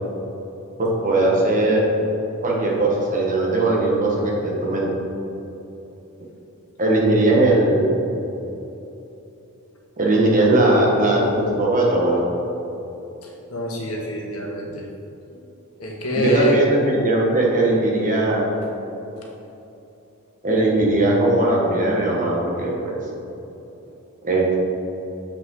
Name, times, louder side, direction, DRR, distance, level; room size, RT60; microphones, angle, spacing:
voice 1, 0.8-1.8 2.4-4.9 6.8-7.8 10.0-12.2 16.2-18.5 20.4-22.9 24.2-24.5, right 2 dB, 40° right, -2 dB, 1.4 m, -19 dB
voice 2, 13.2-14.8 15.8-16.6, left 1 dB, 75° left, -2 dB, 1.4 m, -25 dB
7.5 x 5.9 x 3.8 m, 2.9 s
head